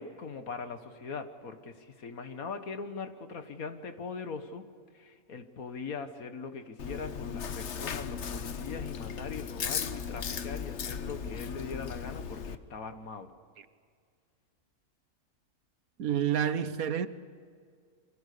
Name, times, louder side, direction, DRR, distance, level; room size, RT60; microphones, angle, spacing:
voice 1, 0.0-4.6 4.9-13.3, left 5 dB, 70° left, 1.9 m, -41 dB
Chewing mastication, 6.8-12.5, left 7 dB, 55° left, 1.1 m, -37 dB
voice 2, 16.0-17.1, right 9 dB, 70° right, 1.4 m, -28 dB
29.0 x 24.5 x 6.8 m
omnidirectional pair, 1.6 m